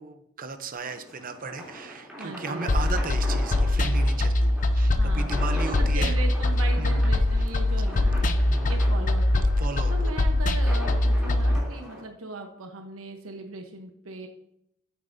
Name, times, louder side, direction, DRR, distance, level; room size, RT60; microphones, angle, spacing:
voice 1, 0.0-6.2 6.8-7.0 7.3-7.6 8.4-8.8 9.6-10.1, right 4 dB, 45° right, 9 dB, 0.7 m, -36 dB
sound 1, 0.7-12.0, equal, 5° right, 3.2 m, -40 dB
voice 2, 2.2-2.7 4.8-8.2 8.7-9.5 9.9-14.3, right 2 dB, 90° right, 4 dB, 1.1 m, -38 dB
sound 2, 2.7-11.6, left 1 dB, 40° left, 0.5 m, -22 dB
8.9 x 8.7 x 2.7 m, 0.77 s
head